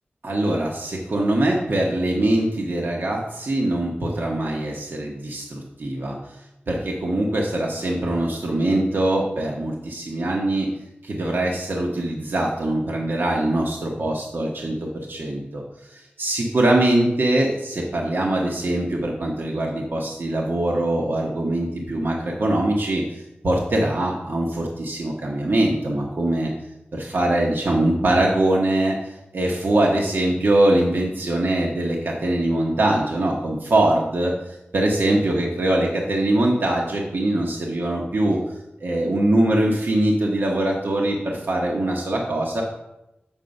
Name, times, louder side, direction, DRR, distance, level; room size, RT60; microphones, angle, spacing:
voice 1, 0.2-6.4 6.7-10.7 11.0-26.5 26.9-38.4 38.8-42.6, right 1 dB, 65° right, -2 dB, 1.1 m, -22 dB
7.3 x 4.4 x 5.3 m, 0.91 s
cardioid pair, 45°, 4 cm